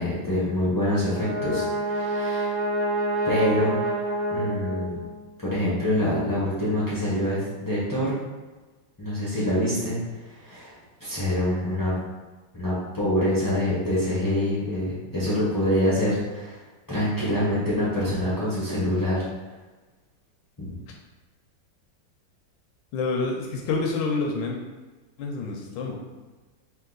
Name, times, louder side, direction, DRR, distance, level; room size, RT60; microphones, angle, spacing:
voice 1, 0.0-2.6 3.2-3.7 4.3-5.0 5.4-8.2 9.0-10.0 10.2-10.7 11.0-12.0 12.5-16.6 16.9-19.2 20.6-20.7, left 1 dB, 30° left, -9 dB, 0.3 m, -25 dB
Brass instrument, 0.8-5.2, right 1 dB, 40° right, 1.0 m, -27 dB
voice 2, 22.9-24.6 25.2-26.0, left 3 dB, 85° left, 0 dB, 1.3 m, -27 dB
3.6 x 2.7 x 3.8 m, 1.2 s
omnidirectional pair, 1.9 m